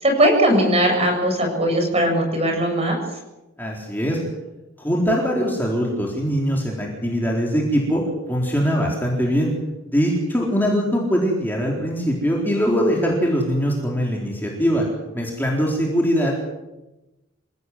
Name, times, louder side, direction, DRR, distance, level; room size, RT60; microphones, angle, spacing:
voice 1, 0.0-3.0, right 1 dB, 30° right, 3 dB, 7.7 m, -19 dB
voice 2, 3.6-4.2 4.8-8.0 8.3-9.5 9.9-14.9 15.1-16.5, equal, 10° left, -2 dB, 4.1 m, -22 dB
27.5 x 17.5 x 8.1 m, 1.0 s
head